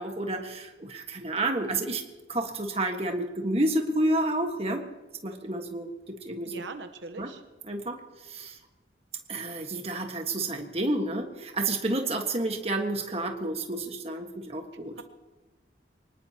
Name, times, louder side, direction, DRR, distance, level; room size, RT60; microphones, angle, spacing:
voice 1, 0.0-2.0 2.3-4.8 5.2-6.5 7.2-7.3 7.7-8.0 8.3-8.6 9.3-14.9, right 2 dB, 35° right, 4 dB, 1.6 m, -30 dB
voice 2, 6.4-7.4 15.0-15.1, right 3 dB, 85° right, 8 dB, 1.0 m, -40 dB
24.5 x 19.5 x 2.9 m, 1.2 s
head